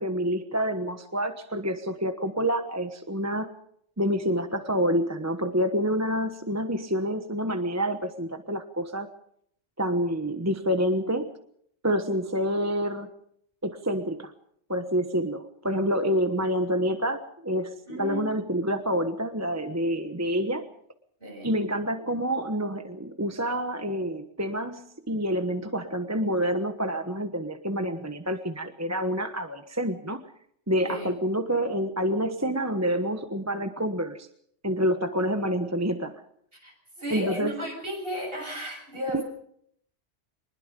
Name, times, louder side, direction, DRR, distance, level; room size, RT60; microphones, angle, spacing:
voice 1, 0.0-3.5 4.0-9.1 9.8-11.3 11.8-13.1 13.6-14.3 14.7-20.6 21.4-30.2 30.7-34.3 34.6-36.2 37.1-37.5 39.1-39.2, equal, 15° right, 7 dB, 1.1 m, -27 dB
voice 2, 17.9-18.3 21.2-21.5 30.8-31.1 36.6-39.2, equal, 50° right, 2 dB, 7.8 m, -34 dB
24.0 x 21.0 x 5.3 m, 0.68 s
omnidirectional pair, 1.2 m